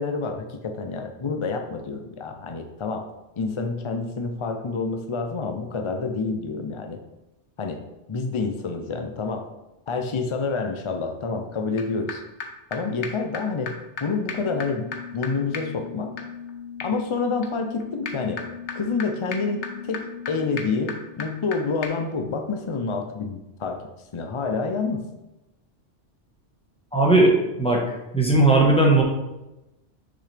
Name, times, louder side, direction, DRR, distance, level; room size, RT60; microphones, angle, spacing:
voice 1, 0.0-3.1 3.4-7.0 7.6-7.8 8.1-9.5 9.9-12.2 12.7-16.1 16.8-18.4 18.7-23.8 24.1-25.1, left 4 dB, 45° left, 5 dB, 0.4 m, -28 dB
sound 1, 11.8-11.9 12.1-12.2 12.4-12.5 12.7-12.8 13.0-13.1 13.3-13.4 13.7-13.8 14.0-14.1 14.3-21.6 21.8-21.9, left 6 dB, 75° left, 1.1 m, -36 dB
voice 2, 26.9-27.8 28.1-29.0, right 2 dB, 5° left, -1 dB, 1.1 m, -17 dB
6.2 x 6.1 x 3.3 m, 0.97 s
omnidirectional pair, 1.2 m